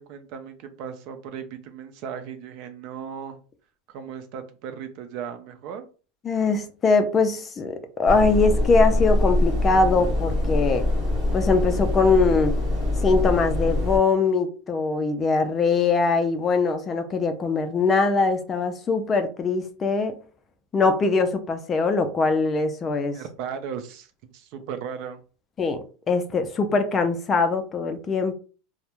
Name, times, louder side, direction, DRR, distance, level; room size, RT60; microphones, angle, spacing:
voice 1, 0.0-3.4 3.9-5.9 23.1-25.2, right 7 dB, 50° right, 0.4 m, -36 dB
voice 2, 6.2-10.9 11.3-12.6 13.0-20.2 20.7-23.2 25.6-28.3, left 4 dB, 20° left, 0.3 m, -22 dB
sound 1, 8.1-14.0, left 1 dB, 25° right, 1.2 m, -23 dB
2.2 x 2.0 x 2.9 m
supercardioid pair, 145°, 0 cm